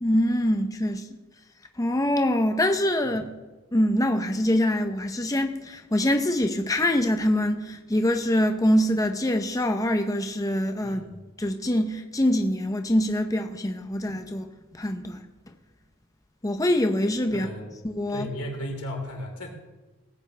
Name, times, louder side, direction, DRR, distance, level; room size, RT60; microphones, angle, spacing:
voice 1, 0.0-1.1 1.7-3.3 3.7-15.5 16.4-17.5 17.8-18.3, left 1 dB, 15° left, 0.7 m, -24 dB
voice 2, 17.3-17.7 18.1-19.5, left 1 dB, 85° left, 3.5 m, -35 dB
18.5 x 16.0 x 3.3 m
head